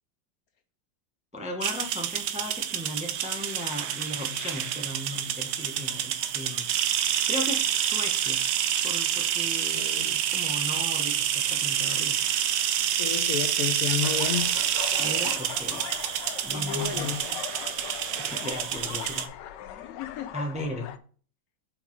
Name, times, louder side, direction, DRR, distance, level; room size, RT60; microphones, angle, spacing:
voice 1, 1.3-6.7 7.3-8.4 8.8-12.2 15.0-15.9 16.4-17.2 18.2-19.3 19.8-19.9 20.3-20.9, left 1 dB, 5° right, 0.6 m, -36 dB
sound 1, 1.6-19.3, right 10 dB, 80° right, 1.3 m, -28 dB
voice 2, 9.7-10.2 13.0-14.5 16.5-17.4 19.6-20.3, left 9 dB, 70° left, 0.9 m, -32 dB
sound 2, 14.0-21.0, left 11 dB, 90° left, 1.3 m, -40 dB
5.6 x 5.2 x 4.5 m
omnidirectional pair, 1.9 m